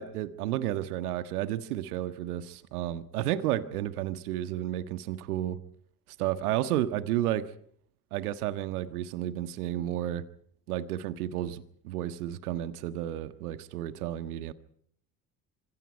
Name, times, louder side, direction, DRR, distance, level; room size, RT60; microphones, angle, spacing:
voice 1, 0.0-5.6 6.2-7.5 8.1-10.2 10.7-14.5, right 12 dB, 70° right, 1.6 m, -32 dB
28.0 x 26.0 x 4.7 m
figure-of-eight pair, 50°, 46 cm